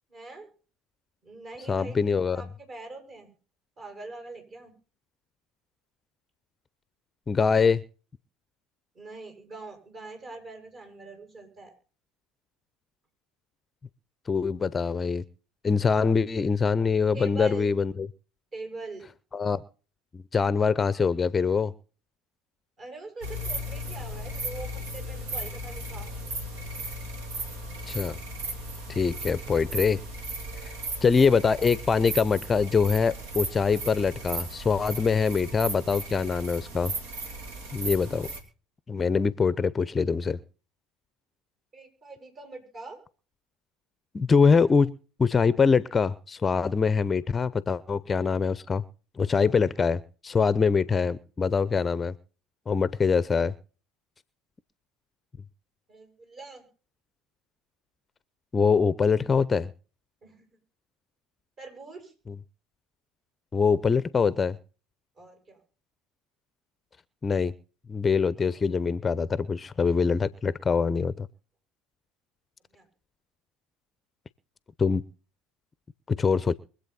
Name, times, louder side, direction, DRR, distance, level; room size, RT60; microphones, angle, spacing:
voice 1, 0.1-0.5 1.2-2.0 2.3-3.3 3.8-4.7 9.0-11.7 17.1-17.8 18.5-19.0 22.8-26.1 41.7-43.0 55.9-56.6 60.2-60.5 61.6-62.1 65.2-65.6 72.7-72.9, right 3 dB, 40° right, 4 dB, 7.3 m, -43 dB
voice 2, 1.7-2.4 7.3-7.8 14.3-15.2 15.6-18.1 19.3-19.6 20.1-21.7 27.9-28.2 28.9-30.0 30.6-30.7 31.0-36.9 37.7-38.3 38.9-40.4 44.1-44.9 45.2-48.8 49.2-52.1 52.7-53.5 58.5-59.7 62.3-62.4 63.5-64.6 67.2-67.5 67.9-71.3 74.8-75.0 76.1-76.5, left 5 dB, 25° left, 18 dB, 0.7 m, -24 dB
sound 1, 23.2-38.4, right 1 dB, 70° right, 2.9 m, -36 dB
24.0 x 8.2 x 4.2 m, 0.38 s
hypercardioid pair, 65°, 0 cm